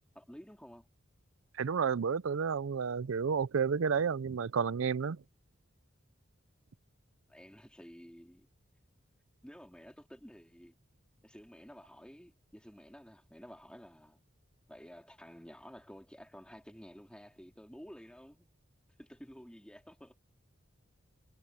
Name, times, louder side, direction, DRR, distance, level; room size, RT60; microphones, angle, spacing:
voice 1, 0.2-0.9 7.3-8.5 9.4-10.8 11.2-14.2 14.7-18.5 19.0-20.2, equal, 5° left, 3.5 m, -52 dB
voice 2, 1.6-5.2, right 6 dB, 80° right, 0.5 m, -31 dB
head